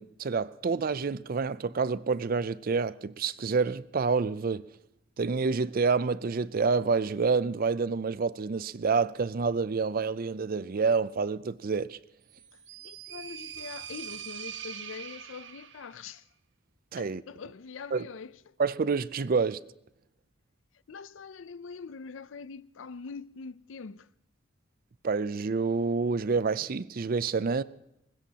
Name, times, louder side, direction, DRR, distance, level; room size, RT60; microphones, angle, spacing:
voice 1, 0.0-4.7 5.2-12.0 16.9-17.2 17.9-18.1 18.6-19.6 25.0-27.6, right 4 dB, 50° right, 0.5 m, -28 dB
sound 1, 12.3-16.0, right 9 dB, 65° right, 1.1 m, -42 dB
voice 2, 12.8-16.2 17.0-18.6 20.9-24.1, left 5 dB, 75° left, 0.5 m, -43 dB
21.5 x 20.0 x 2.9 m
head